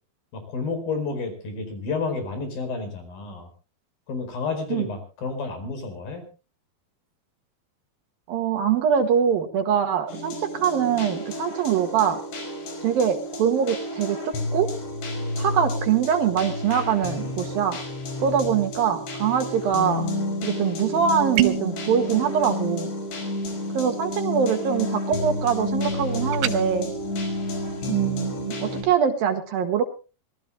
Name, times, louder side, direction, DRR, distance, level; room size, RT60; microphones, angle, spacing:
voice 1, 0.3-3.5 4.1-6.2, left 4 dB, 60° left, 8 dB, 6.5 m, -30 dB
voice 2, 8.3-12.2 12.8-14.7 15.4-17.8 18.2-20.1 20.4-22.9 23.7-26.9 27.9-29.8, right 8 dB, 65° right, 6 dB, 3.1 m, -23 dB
sound 1, 10.1-28.8, left 1 dB, 90° left, 7.0 m, -30 dB
sound 2, 21.4-21.8 26.3-26.6, right 13 dB, 85° right, 3.3 m, -23 dB
25.5 x 19.0 x 2.2 m, 0.34 s
omnidirectional pair, 4.9 m